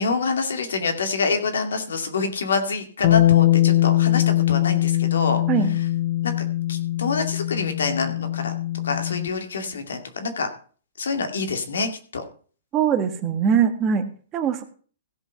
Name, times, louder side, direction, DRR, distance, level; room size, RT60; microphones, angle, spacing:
voice 1, 0.0-5.4 6.2-6.3 6.7-8.5 8.8-10.5 11.0-12.2, left 4 dB, 90° left, 6 dB, 2.3 m, -26 dB
Bass guitar, 3.0-9.3, left 14 dB, 50° left, 0.5 m, -21 dB
voice 2, 12.7-14.1 14.3-14.6, right 7 dB, 20° right, 7 dB, 1.3 m, -21 dB
16.0 x 5.5 x 5.7 m, 0.42 s
hypercardioid pair, 155°, 0 cm